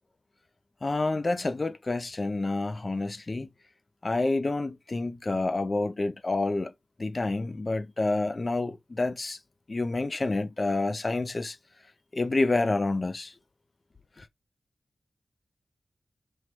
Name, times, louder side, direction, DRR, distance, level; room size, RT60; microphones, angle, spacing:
voice 1, 0.8-3.5 4.0-6.7 7.0-9.4 9.7-11.6 12.1-13.3, left 2 dB, 50° left, 0.5 m, -28 dB
4.5 x 3.1 x 3.0 m
cardioid pair, 45°, 0 cm